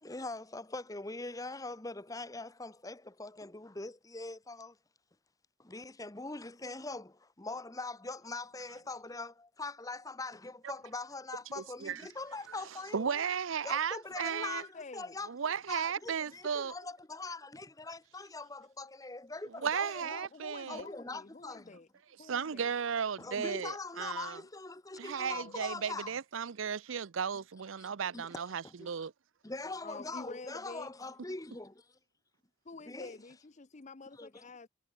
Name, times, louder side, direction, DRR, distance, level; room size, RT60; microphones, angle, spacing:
voice 1, 0.0-4.8 5.6-13.1 13.6-15.3 15.7-20.3 20.7-21.8 23.2-26.1 27.8-28.3 28.6-28.9 29.4-31.9 32.9-33.2 34.2-34.5, left 3 dB, 15° left, 1.0 m, -42 dB
voice 2, 11.6-12.1 12.5-12.6 12.9-14.6 15.3-16.7 19.6-20.8 22.2-24.4 25.0-29.1, right 7 dB, 75° right, 0.6 m, -35 dB
voice 3, 14.3-15.1 20.0-21.9 22.2-22.7 25.2-25.5 29.8-30.9 32.7-34.7, left 3 dB, 35° left, 0.6 m, -48 dB
head